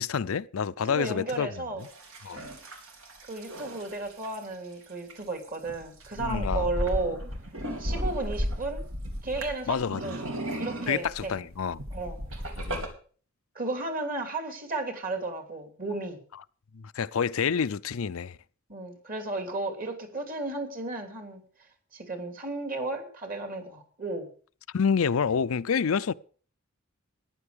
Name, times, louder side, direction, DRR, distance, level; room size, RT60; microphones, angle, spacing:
voice 1, 0.0-1.9 2.2-2.4 6.2-6.7 9.7-10.0 10.9-11.8 12.6-12.8 16.7-18.4 24.7-26.1, left 6 dB, 85° left, 0.5 m, -28 dB
voice 2, 0.8-1.8 3.2-7.2 7.8-8.8 9.2-10.2 10.6-11.4 11.9-12.2 13.5-16.2 18.7-21.4 21.9-24.3, right 2 dB, 45° right, 3.0 m, -34 dB
sound 1, 1.8-4.4 5.1-5.2 5.4-12.9, equal, 75° right, 3.1 m, -34 dB
14.5 x 10.5 x 5.1 m
head